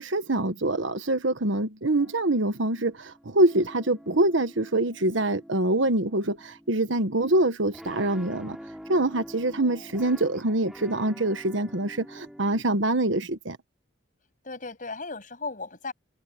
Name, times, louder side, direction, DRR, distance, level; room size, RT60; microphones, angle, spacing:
voice 1, 0.0-8.6 8.9-13.6, right 2 dB, 70° right, 1.4 m, -25 dB
sound 1, 1.9-12.6, equal, 5° right, 7.1 m, -47 dB
voice 2, 14.4-15.9, left 3 dB, 45° left, 7.2 m, -37 dB
head